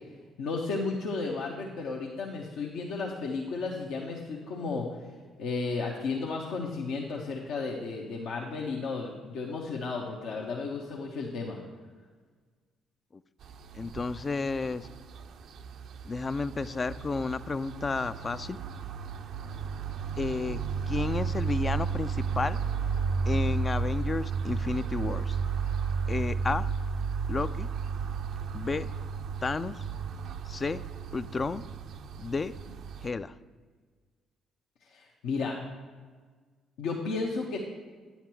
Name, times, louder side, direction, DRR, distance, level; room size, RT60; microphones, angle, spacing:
voice 1, 0.4-4.9 5.4-11.6 34.9-35.6 36.8-37.6, left 4 dB, 65° left, -2 dB, 0.8 m, -33 dB
sound 1, 13.4-33.1, right 5 dB, 60° right, 0.5 m, -33 dB
voice 2, 13.7-14.9 16.0-18.6 20.2-20.6 20.9-22.6 23.3-25.4 26.1-26.7 27.3-27.7 28.5-28.9 29.4-29.8 30.5-30.8 31.1-31.6 32.2-32.5 33.0-33.3, left 4 dB, 35° left, 14 dB, 0.3 m, -32 dB
9.4 x 5.7 x 4.5 m, 1.5 s
hypercardioid pair, 45°, 0 cm